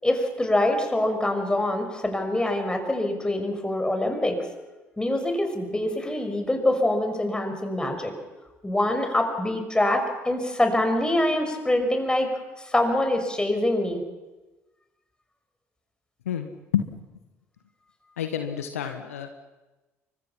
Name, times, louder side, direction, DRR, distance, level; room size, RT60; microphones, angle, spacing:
voice 1, 0.0-4.4 5.0-8.1 8.6-12.3 12.6-14.0, left 1 dB, 10° left, 5 dB, 6.0 m, -24 dB
voice 2, 18.2-19.4, left 9 dB, 75° left, 7 dB, 1.5 m, -28 dB
30.0 x 24.0 x 5.9 m, 1.1 s
figure-of-eight pair, 55°, 8 cm